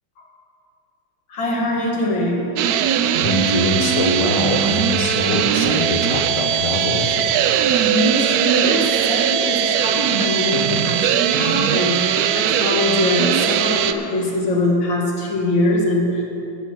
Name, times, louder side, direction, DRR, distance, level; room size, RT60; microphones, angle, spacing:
voice 1, 1.3-2.5 7.9-16.2, left 1 dB, 75° left, -2 dB, 2.5 m, -22 dB
sound 1, 2.6-13.9, right 9 dB, 75° right, 0.8 m, -20 dB
voice 2, 3.2-7.4, left 2 dB, 35° left, 3 dB, 0.6 m, -23 dB
14.0 x 5.7 x 7.9 m, 2.8 s
omnidirectional pair, 2.1 m